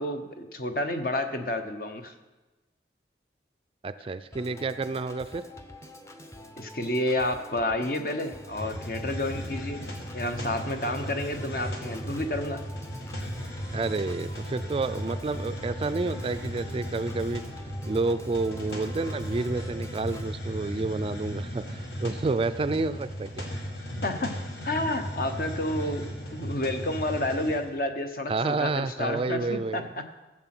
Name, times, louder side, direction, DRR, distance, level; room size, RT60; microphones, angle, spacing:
voice 1, 0.0-2.1 6.6-9.8 10.1-12.6 24.0-24.3 24.6-30.0, left 1 dB, 55° left, 6 dB, 1.0 m, -30 dB
voice 2, 3.8-5.4 13.7-17.4 17.9-23.5 25.8-25.9 28.3-29.9, right 3 dB, 30° right, 11 dB, 0.3 m, -30 dB
Organ, 4.3-20.3, equal, 15° left, 0.7 m, -46 dB
Hiss, 8.4-27.7, equal, 75° left, 2.0 m, -36 dB
14.0 x 7.5 x 6.0 m, 1.1 s
head